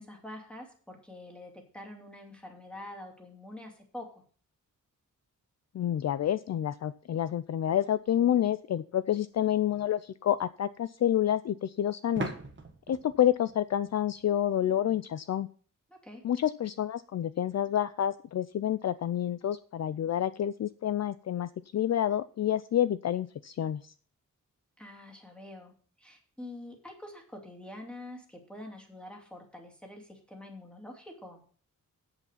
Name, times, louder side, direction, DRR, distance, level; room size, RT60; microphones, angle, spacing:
voice 1, 0.0-4.2 15.9-16.3 24.8-31.4, left 1 dB, 5° left, 1 dB, 2.5 m, -46 dB
voice 2, 5.7-12.3 12.9-15.5 16.2-23.8, left 11 dB, 55° left, 15 dB, 0.4 m, -28 dB
sound 1, 9.2-9.3 12.2-14.8, right 3 dB, 35° right, 1.5 m, -41 dB
8.4 x 8.1 x 5.7 m, 0.44 s
wide cardioid pair, 135°, 32 cm